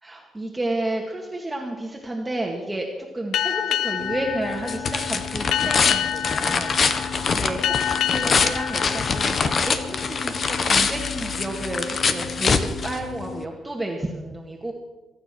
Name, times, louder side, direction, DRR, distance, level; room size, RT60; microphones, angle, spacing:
voice 1, 0.0-2.9 3.1-14.7, right 1 dB, 15° right, 0 dB, 2.1 m, -31 dB
Boat Water vehicle, 3.3-10.4, left 10 dB, 80° left, 0.6 m, -28 dB
sound 1, 4.0-13.4, left 5 dB, 45° left, 1.4 m, -24 dB
22.5 x 9.8 x 6.2 m, 1.2 s
cardioid pair, 90°, 0 cm